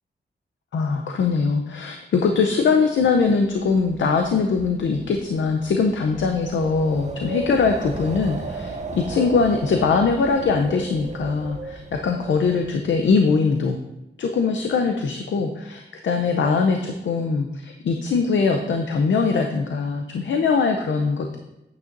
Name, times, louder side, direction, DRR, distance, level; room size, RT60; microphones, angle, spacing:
voice 1, 0.7-13.8 14.2-21.4, left 4 dB, 85° left, 4 dB, 0.6 m, -22 dB
Wind, 3.0-13.1, right 3 dB, 35° right, 0.8 m, -36 dB
8.9 x 8.8 x 2.6 m, 0.96 s
wide cardioid pair, 95°, 19 cm